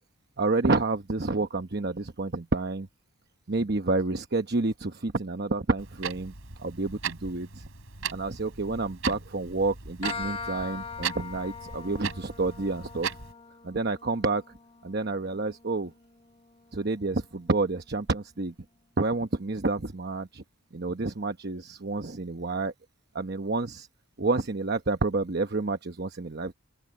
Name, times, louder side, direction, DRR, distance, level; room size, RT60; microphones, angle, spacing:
voice 1, 0.4-2.9 3.5-6.3 6.6-7.6 8.1-13.1 13.6-14.4 14.8-15.9 16.7-18.5 19.0-20.4 20.7-22.7 23.1-23.9 24.2-26.5, right 3 dB, 50° right, 1.0 m, -29 dB
Clock, 5.8-13.3, right 7 dB, 80° right, 3.3 m, -38 dB
sound 1, 10.0-17.4, left 5 dB, 30° left, 2.8 m, -42 dB
open air
head